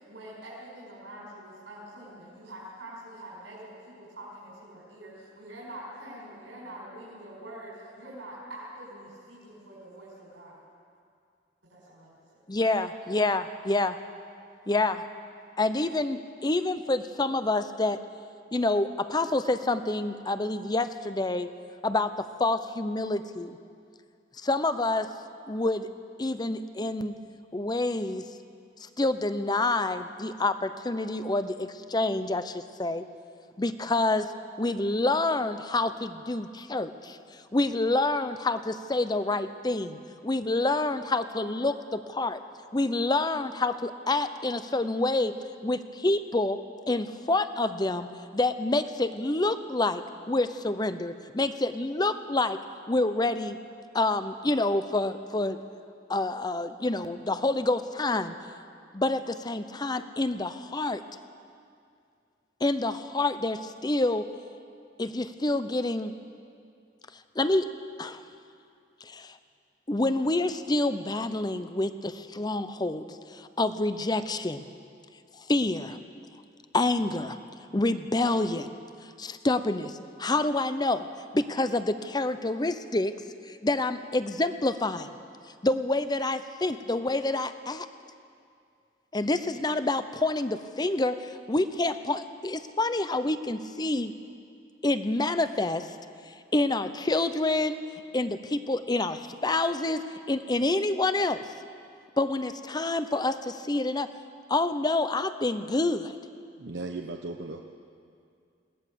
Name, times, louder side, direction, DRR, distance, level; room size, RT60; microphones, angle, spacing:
voice 1, 0.0-10.6 11.7-12.2, right 1 dB, 80° right, -6 dB, 5.3 m, -45 dB
voice 2, 12.5-14.0 14.7-15.1 15.6-18.0 18.5-21.5 21.8-23.6 24.4-25.1 25.5-25.9 26.2-27.1 27.5-28.2 28.8-33.0 33.6-34.3 34.6-37.2 37.5-40.0 40.2-42.4 42.7-45.4 45.6-46.6 46.9-52.6 52.9-53.6 53.9-55.6 56.1-58.3 58.9-61.0 62.6-64.3 65.0-66.1 67.4-67.7 68.0-68.2 69.0-69.4 69.9-74.6 75.5-76.0 76.7-77.4 77.7-78.7 79.2-81.1 81.3-83.2 83.5-85.1 85.6-87.9 89.1-94.1 94.8-95.9 96.5-97.8 98.1-101.4 102.2-104.1 104.5-106.1, left 2 dB, 20° left, 11 dB, 0.7 m, -27 dB
voice 3, 106.6-107.6, right 2 dB, 65° right, 3 dB, 0.9 m, -36 dB
22.0 x 17.5 x 7.0 m, 2.4 s
head